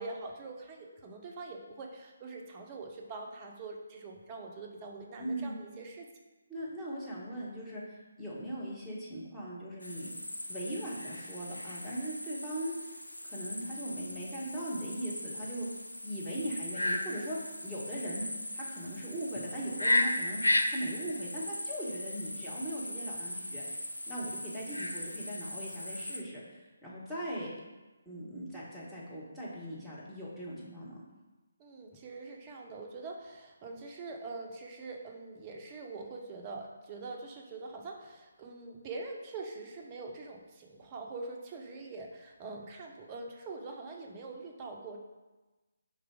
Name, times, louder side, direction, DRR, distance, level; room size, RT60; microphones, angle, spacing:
voice 1, 0.0-6.1 24.5-24.8 31.6-45.0, right 3 dB, 25° right, 1 dB, 0.8 m, -44 dB
voice 2, 5.2-5.6 6.5-7.8 8.2-10.1 10.5-12.9 13.2-15.7 16.0-18.3 18.5-23.6 24.1-27.5 28.0-31.0, right 1 dB, 5° left, -9 dB, 1.4 m, -39 dB
sound 1, 9.8-26.2, left 1 dB, 85° left, 0.6 m, -36 dB
4.9 x 4.0 x 4.8 m, 1.2 s
figure-of-eight pair, 145°, 0 cm